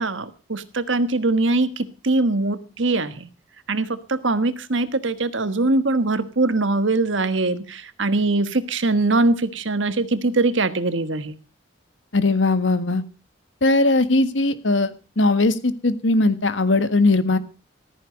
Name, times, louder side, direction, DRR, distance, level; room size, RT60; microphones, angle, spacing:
voice 1, 0.0-3.3 3.7-11.3, right 2 dB, 80° right, 12 dB, 1.4 m, -22 dB
voice 2, 12.1-13.0 13.6-17.4, left 2 dB, 80° left, 12 dB, 1.5 m, -19 dB
14.5 x 13.5 x 5.1 m, 0.34 s
head